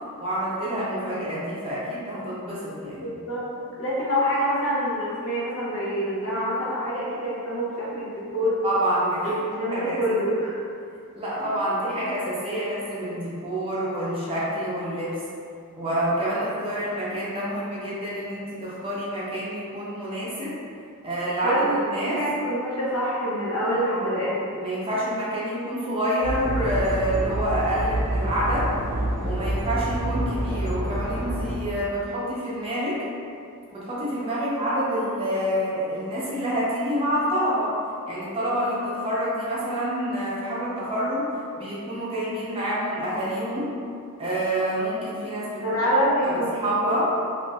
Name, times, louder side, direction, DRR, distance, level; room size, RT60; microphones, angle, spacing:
voice 1, 0.2-3.1 8.6-10.0 11.1-15.2 15.8-20.5 21.0-22.2 23.9-24.2 24.5-28.7 29.2-33.0 33.7-37.7 38.1-43.7 44.2-45.6 46.2-47.0, equal, 25° right, -8 dB, 0.6 m, -27 dB
voice 2, 3.0-8.6 9.2-10.5 11.4-11.5 21.4-21.7 22.0-24.5 28.9-29.3 45.6-47.0, equal, 65° left, -7 dB, 0.8 m, -26 dB
sound 1, 26.2-31.6, right 1 dB, 80° right, 0.5 m, -27 dB
3.1 x 2.5 x 2.4 m, 2.4 s
head